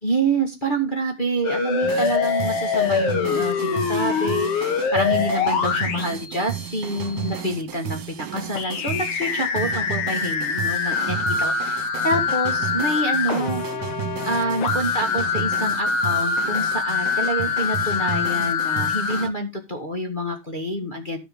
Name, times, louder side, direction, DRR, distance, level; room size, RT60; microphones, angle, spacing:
voice 1, 0.0-13.6 14.2-21.2, right 1 dB, 20° left, 1 dB, 1.5 m, -27 dB
sound 1, 1.4-7.4 8.6-19.3, left 6 dB, 80° left, 3.1 m, -24 dB
sound 2, 1.8-19.3, right 9 dB, 80° right, 3.0 m, -33 dB
13.5 x 5.5 x 5.3 m, 0.24 s
omnidirectional pair, 3.4 m